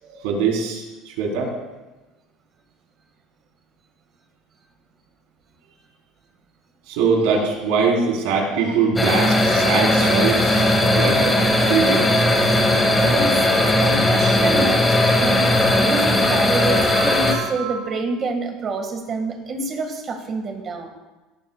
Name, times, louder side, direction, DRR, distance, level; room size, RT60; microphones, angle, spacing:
voice 1, 0.0-1.5 6.9-12.1 16.7-17.9, right 5 dB, 90° right, -1 dB, 4.1 m, -23 dB
sound 1, 9.0-17.3, left 1 dB, 10° left, 1.7 m, -18 dB
voice 2, 13.0-20.9, right 3 dB, 30° right, 4 dB, 1.9 m, -27 dB
18.0 x 14.5 x 2.4 m, 1.1 s
cardioid pair, 160°, 0 cm